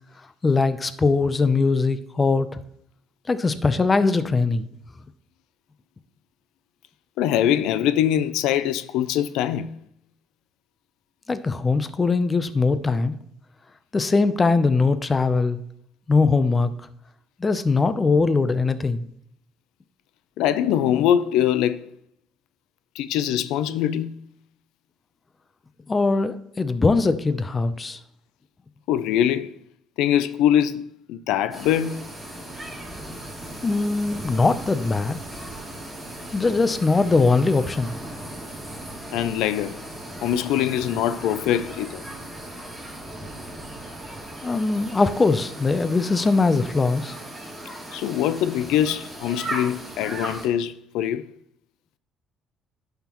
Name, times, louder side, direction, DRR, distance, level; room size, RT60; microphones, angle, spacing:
voice 1, 0.4-2.6 3.3-4.7 11.3-13.2 13.9-15.6 16.1-16.7 17.4-19.0 25.9-28.0 33.6-35.2 36.3-37.9 44.4-47.2, left 3 dB, 20° left, 0.5 m, -21 dB
voice 2, 7.2-9.7 20.4-21.9 23.0-24.1 28.9-29.5 30.0-32.0 39.1-39.8 40.2-42.0 47.9-51.2, left 10 dB, 85° left, 0.4 m, -23 dB
sound 1, 31.5-50.5, right 1 dB, 5° right, 2.7 m, -37 dB
11.0 x 5.8 x 3.0 m
cardioid pair, 120°, 0 cm